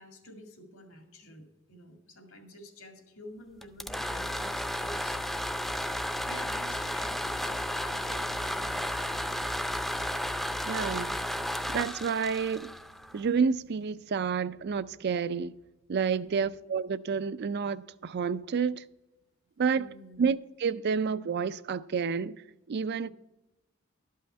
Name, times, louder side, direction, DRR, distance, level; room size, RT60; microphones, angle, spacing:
voice 1, 0.0-5.3 6.2-8.9 16.2-16.5 19.7-20.2 23.0-23.1, left 1 dB, 80° left, 2.1 m, -49 dB
sound 1, 3.6-13.4, equal, ahead, 0.5 m, -33 dB
voice 2, 10.7-11.2 11.7-12.7 13.1-15.5 15.9-18.8 19.6-19.9 20.2-22.4 22.7-23.1, right 6 dB, 55° right, 0.4 m, -29 dB
12.0 x 5.7 x 7.7 m
head